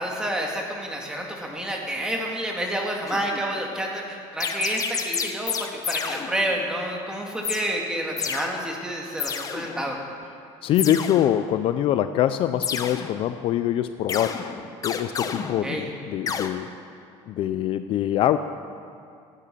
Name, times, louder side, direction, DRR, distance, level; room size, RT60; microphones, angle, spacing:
voice 1, 0.0-10.0 15.6-15.9, right 1 dB, 5° right, 0 dB, 2.0 m, -29 dB
sound 1, 3.1-3.6 4.4-6.7 7.4-7.7 8.2-8.5 9.2-10.0 10.7-11.6 12.6-13.5 14.1-16.0 16.3-16.5, left 6 dB, 30° left, 0.8 m, -31 dB
voice 2, 10.6-14.4 14.8-16.7 17.3-18.4, left 11 dB, 50° left, 11 dB, 0.4 m, -24 dB
12.0 x 9.3 x 7.5 m, 2.5 s
cardioid pair, 140°, 12 cm